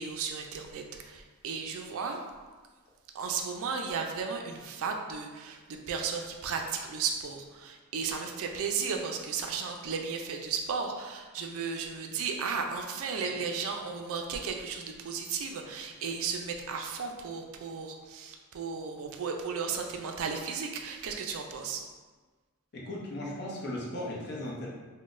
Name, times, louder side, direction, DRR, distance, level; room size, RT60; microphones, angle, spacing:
voice 1, 0.0-2.2 3.1-21.9, right 5 dB, 65° right, 3 dB, 0.4 m, -34 dB
voice 2, 22.7-24.7, left 1 dB, 50° left, -4 dB, 0.7 m, -37 dB
3.8 x 2.1 x 2.5 m, 1.3 s
head